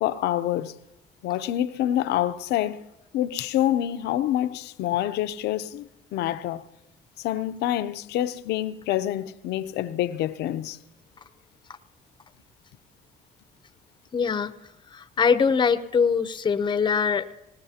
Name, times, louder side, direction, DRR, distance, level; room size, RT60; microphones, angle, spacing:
voice 1, 0.0-0.8 1.2-2.8 3.1-6.6 7.2-10.8, left 12 dB, 80° left, 0.7 m, -27 dB
voice 2, 14.1-14.5 14.9-17.3, left 6 dB, 25° left, 0.7 m, -22 dB
20.0 x 18.5 x 2.8 m
cardioid pair, 110°, 17 cm